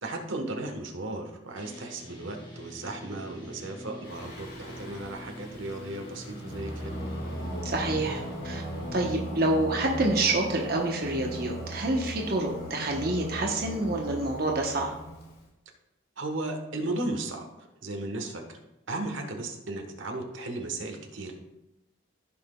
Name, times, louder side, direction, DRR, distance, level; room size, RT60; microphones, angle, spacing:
voice 1, 0.0-6.9 16.2-18.6 18.9-21.3, right 2 dB, 80° right, 4 dB, 1.2 m, -35 dB
sound 1, 1.6-9.1, equal, 25° left, 1.6 m, -45 dB
Singing, 4.0-15.4, equal, 50° left, 1.9 m, -38 dB
voice 2, 7.6-8.2 8.4-8.6 8.9-14.9, right 2 dB, 50° right, 0 dB, 1.0 m, -27 dB
15.0 x 5.9 x 2.3 m, 0.93 s
head